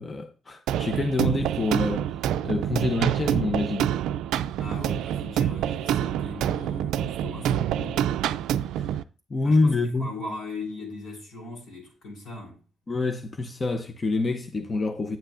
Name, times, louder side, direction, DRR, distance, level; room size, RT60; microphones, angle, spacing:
voice 1, 0.0-2.1 2.4-3.9 8.8-9.0 9.3-10.1 12.9-15.2, left 3 dB, 30° left, 0.6 m, -26 dB
sound 1, 0.7-9.0, right 10 dB, 85° right, 0.3 m, -27 dB
voice 2, 4.5-8.1 9.4-12.6, left 2 dB, 75° left, 4.0 m, -39 dB
9.0 x 8.0 x 2.5 m
cardioid pair, 90°, 0 cm